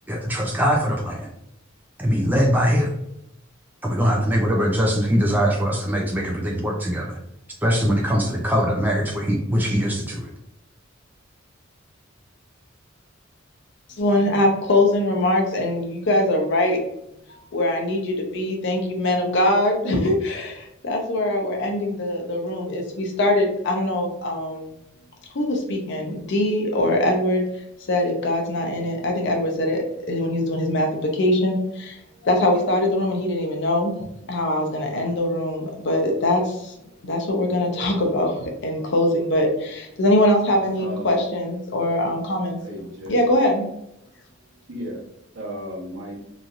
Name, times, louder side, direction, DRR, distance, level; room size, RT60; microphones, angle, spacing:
voice 1, 0.1-1.3 2.0-2.9 3.8-7.2 7.6-10.3, equal, 10° right, -2 dB, 0.4 m, -22 dB
voice 2, 14.0-16.8 17.5-24.7 25.3-27.4 27.9-32.0 32.2-36.7 37.0-42.6 43.1-43.7, left 1 dB, 60° left, 1 dB, 0.6 m, -22 dB
voice 3, 40.8-41.1 42.6-43.2 44.7-45.1 45.3-46.2, equal, 65° right, -3 dB, 1.0 m, -34 dB
3.0 x 2.6 x 2.4 m, 0.81 s
head